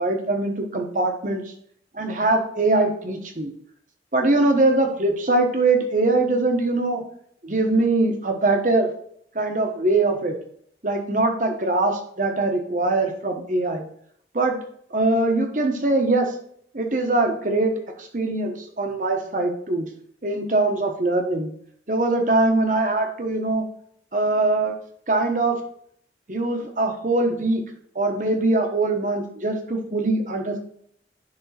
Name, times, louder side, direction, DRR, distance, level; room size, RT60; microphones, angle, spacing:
voice 1, 0.0-1.4 2.0-3.5 4.1-7.0 7.4-8.9 9.3-10.3 10.8-13.9 14.3-14.6 14.9-16.3 16.7-17.7 18.0-19.9 20.2-21.5 21.9-23.6 24.1-24.7 25.1-25.6 26.3-27.6 27.9-30.6, right 2 dB, 45° right, 3 dB, 1.2 m, -22 dB
10.5 x 3.6 x 4.3 m, 0.66 s
head